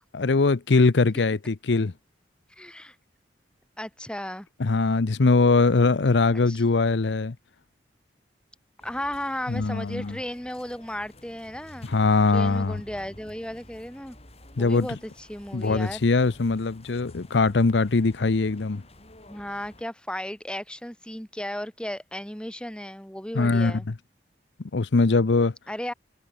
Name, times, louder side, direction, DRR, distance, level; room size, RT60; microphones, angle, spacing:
voice 1, 0.1-1.9 4.6-7.3 9.5-10.2 11.9-12.8 14.6-14.9 15.5-18.8 23.3-23.8 24.7-25.5, left 3 dB, 80° left, 0.7 m, -21 dB
voice 2, 2.5-2.9 3.8-4.5 6.5-6.6 8.8-11.9 12.3-14.2 14.6-16.0 19.2-23.9 25.7-25.9, left 1 dB, 5° left, 2.7 m, -35 dB
sound 1, 8.8-19.8, left 1 dB, 35° left, 7.6 m, -50 dB
head